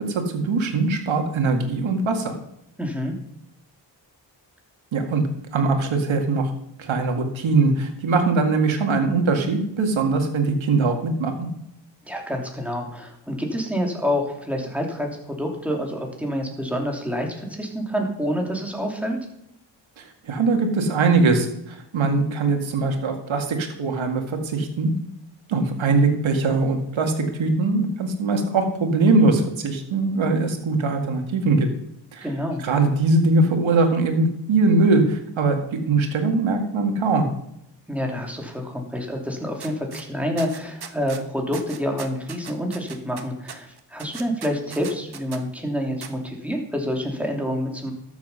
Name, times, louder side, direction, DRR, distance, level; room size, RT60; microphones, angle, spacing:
voice 1, 0.0-2.4 4.9-5.2 5.5-6.5 6.8-11.5 20.0-24.9 25.5-31.7 32.1-32.3 32.6-35.6 35.9-37.3, right 3 dB, 75° right, 5 dB, 2.1 m, -21 dB
voice 2, 2.8-3.1 12.0-19.2 32.2-32.6 37.9-47.9, equal, 5° right, 1 dB, 3.0 m, -27 dB
sound 1, 39.6-40.0 40.4-41.2 41.5-45.4 46.0-46.1, right 7 dB, 55° right, 1.3 m, -38 dB
13.0 x 7.3 x 5.6 m, 0.78 s
cardioid pair, 75°, 47 cm